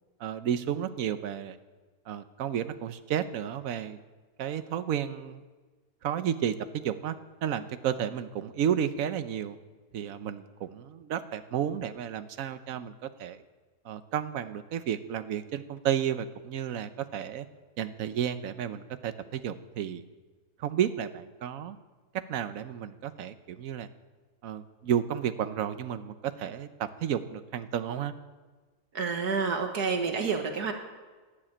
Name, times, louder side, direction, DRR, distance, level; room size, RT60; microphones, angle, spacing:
voice 1, 0.2-1.6 2.1-4.0 4.4-5.4 6.0-7.2 7.4-9.6 9.9-13.4 13.8-17.5 17.8-20.0 20.6-21.8 22.1-23.9 24.4-28.1, right 9 dB, 65° right, 11 dB, 1.2 m, -32 dB
voice 2, 28.9-30.7, right 5 dB, 80° right, 4 dB, 2.1 m, -29 dB
12.0 x 11.5 x 9.0 m, 1.4 s
omnidirectional pair, 1.6 m